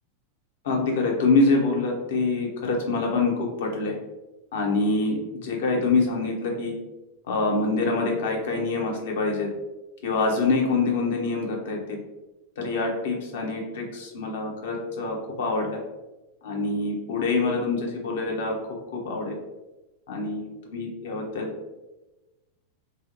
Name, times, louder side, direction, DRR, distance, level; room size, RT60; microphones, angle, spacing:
voice 1, 0.6-4.0 4.5-6.7 7.3-9.5 10.0-12.0 12.6-15.8 16.4-18.6 18.9-19.4 20.1-21.5, left 3 dB, 55° left, 0 dB, 0.6 m, -25 dB
2.6 x 2.0 x 2.5 m, 1.1 s
figure-of-eight pair, 90°, 0 cm